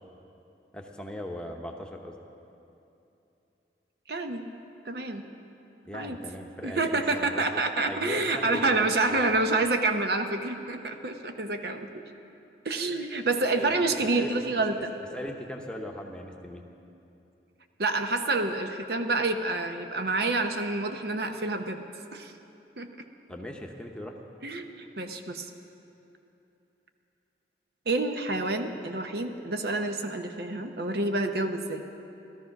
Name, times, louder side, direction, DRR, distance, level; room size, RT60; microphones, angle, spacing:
voice 1, 0.7-2.1 5.8-7.6 7.9-9.4 13.5-14.4 15.1-16.6 23.3-24.2, left 1 dB, 5° left, 1 dB, 0.9 m, -39 dB
voice 2, 4.1-4.5 4.8-5.2 5.9-6.2 6.6-12.0 12.6-14.9 17.8-21.8 22.1-22.3 22.8-22.9 24.4-25.5 27.9-31.8, right 2 dB, 65° right, 6 dB, 0.8 m, -28 dB
16.5 x 13.0 x 5.9 m, 2.9 s
head